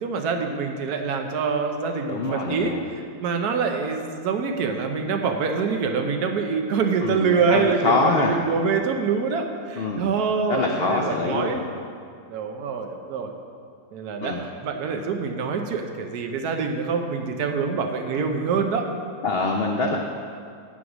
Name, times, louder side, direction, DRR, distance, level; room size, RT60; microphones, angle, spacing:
voice 1, 0.0-11.6 12.3-13.3 13.9-18.9, right 5 dB, 70° right, 4 dB, 1.2 m, -25 dB
voice 2, 2.1-2.8 7.0-8.3 9.7-10.1 10.5-11.6 14.2-14.4 19.2-20.0, left 3 dB, 85° left, 1 dB, 0.5 m, -24 dB
7.8 x 6.0 x 6.1 m, 2.3 s
omnidirectional pair, 1.8 m